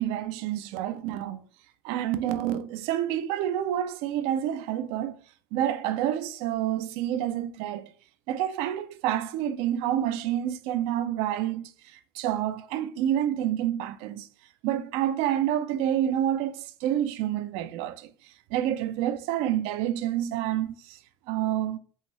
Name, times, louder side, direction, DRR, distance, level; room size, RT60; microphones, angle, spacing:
voice 1, 0.0-1.4 1.8-5.2 5.5-7.9 8.3-14.3 14.6-21.0 21.3-21.8, right 11 dB, 50° right, 0.5 m, -28 dB
5.5 x 2.6 x 3.1 m
figure-of-eight pair, 80°, 13 cm